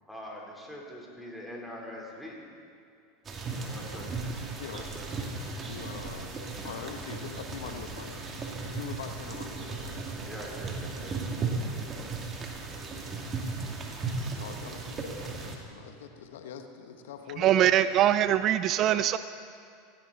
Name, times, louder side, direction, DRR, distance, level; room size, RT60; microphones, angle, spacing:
voice 1, 0.1-2.5 3.7-4.2 4.7-5.6 10.3-11.2, equal, ahead, -2 dB, 4.0 m, -43 dB
sound 1, 3.2-15.6, right 4 dB, 30° right, 2.7 m, -36 dB
voice 2, 3.7-4.3 4.5-4.9 5.6-8.2 8.6-9.9 10.9-11.2 11.5-12.1 14.3-17.9, left 8 dB, 80° left, 6 dB, 1.2 m, -44 dB
voice 3, 17.4-19.2, right 11 dB, 45° right, 13 dB, 0.5 m, -23 dB
17.0 x 17.0 x 4.2 m, 2.4 s
hypercardioid pair, 100°, 0 cm